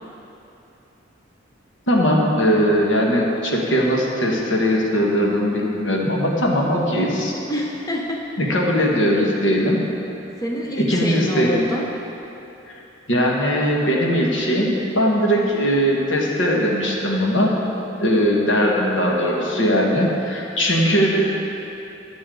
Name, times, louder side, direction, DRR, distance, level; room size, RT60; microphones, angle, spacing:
voice 1, 1.9-7.3 8.4-9.8 10.8-11.6 12.7-12.8 13.1-17.6 18.0-21.3, equal, 80° left, -2 dB, 1.7 m, -19 dB
voice 2, 7.5-8.5 10.4-11.9, equal, 20° left, 0 dB, 0.8 m, -27 dB
13.5 x 9.8 x 3.9 m, 2.9 s
head